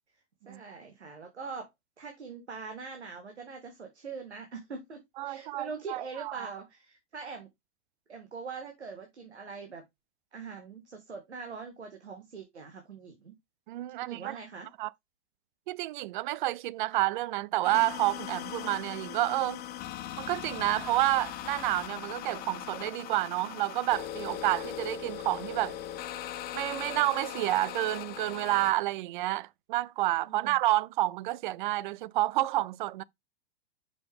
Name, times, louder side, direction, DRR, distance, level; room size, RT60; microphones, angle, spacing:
voice 1, 0.5-1.7 2.0-7.5 8.1-9.8 10.3-13.3 14.0-14.7 30.3-30.6, right 5 dB, 85° right, 1.8 m, -43 dB
voice 2, 5.2-6.5 13.7-14.4 14.8-14.9 15.7-19.6 20.2-25.8 26.5-33.0, right 17 dB, 50° right, 0.5 m, -29 dB
sound 1, 17.6-28.7, left 11 dB, 30° left, 0.8 m, -40 dB
5.9 x 5.8 x 3.5 m
hypercardioid pair, 110°, 33 cm